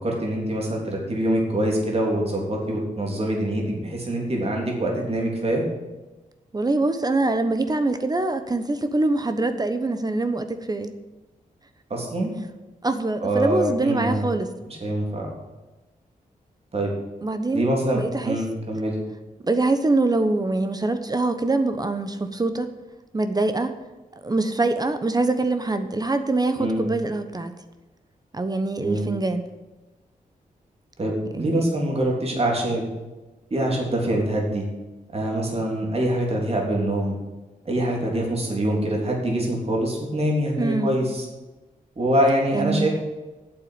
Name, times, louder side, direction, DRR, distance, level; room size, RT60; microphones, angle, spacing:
voice 1, 0.0-5.6 11.9-12.3 13.2-14.3 14.8-15.3 16.7-16.9 17.5-19.0 26.6-26.8 28.8-29.1 31.0-32.8 33.5-34.6 35.1-37.2 37.7-41.3 42.0-42.9, right 1 dB, 45° right, -1 dB, 3.6 m, -24 dB
voice 2, 6.5-10.9 12.8-14.5 17.2-17.7 17.9-18.4 19.4-22.7 23.1-23.7 24.2-27.5 28.3-29.4 31.4-31.6 40.6-40.9 42.5-42.9, right 2 dB, 25° right, 9 dB, 1.0 m, -24 dB
8.9 x 7.7 x 8.8 m, 1.1 s
cardioid pair, 85°, 15 cm